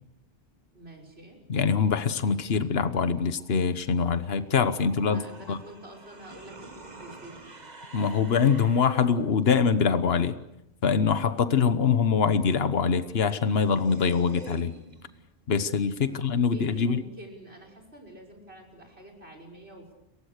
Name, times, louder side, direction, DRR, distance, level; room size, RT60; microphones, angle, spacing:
voice 1, 0.7-1.4 5.0-7.7 16.1-19.9, right 1 dB, 75° right, 3 dB, 6.1 m, -47 dB
voice 2, 1.5-5.2 5.5-5.6 7.9-10.4 10.8-14.7 15.5-17.0, left 6 dB, 70° left, 11 dB, 1.4 m, -24 dB
sound 1, 3.4-9.1 13.0-13.1 13.2-15.3, right 2 dB, 40° right, 1.9 m, -47 dB
30.0 x 23.5 x 6.6 m, 0.84 s
omnidirectional pair, 1.1 m